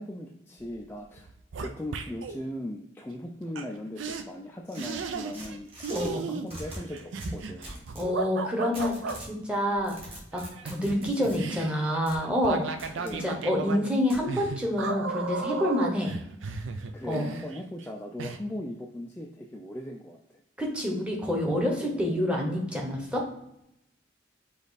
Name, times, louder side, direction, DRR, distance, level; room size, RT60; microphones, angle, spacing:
voice 1, 0.0-1.3 1.6-7.8 13.0-13.5 16.9-20.2 21.9-22.4, left 1 dB, 10° left, 0 dB, 0.3 m, -39 dB
sound 1, 0.6-0.9 1.1-2.4 3.6-3.7 4.0-4.2 4.8-5.6 5.8-9.2 10.3-17.9 18.2-18.4, right 4 dB, 85° right, 0.5 m, -35 dB
sound 2, 4.7-6.1 6.5-8.1 8.7-9.3 9.7-11.4 12.1-12.2 12.8-13.2 14.1-14.2, right 1 dB, 30° right, 1.3 m, -42 dB
voice 2, 7.9-10.0 10.3-13.0 13.2-16.1 17.0-17.3 20.6-23.3, left 1 dB, 5° right, -1 dB, 0.9 m, -28 dB
5.1 x 2.4 x 4.0 m, 0.81 s
head